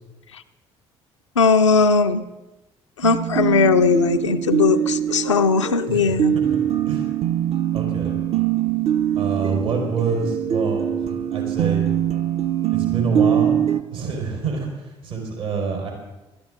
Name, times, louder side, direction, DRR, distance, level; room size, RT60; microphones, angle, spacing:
voice 1, 1.4-2.3 3.0-6.4, left 5 dB, 85° left, 7 dB, 0.5 m, -18 dB
sound 1, 3.0-13.8, right 10 dB, 45° right, 0.6 m, -23 dB
voice 2, 5.9-6.6 6.9-7.1 7.7-8.2 9.1-11.9 12.7-13.6 13.9-15.9, right 4 dB, 75° right, 0 dB, 4.2 m, -27 dB
20.0 x 13.0 x 3.7 m, 1.1 s
figure-of-eight pair, 50°, 15 cm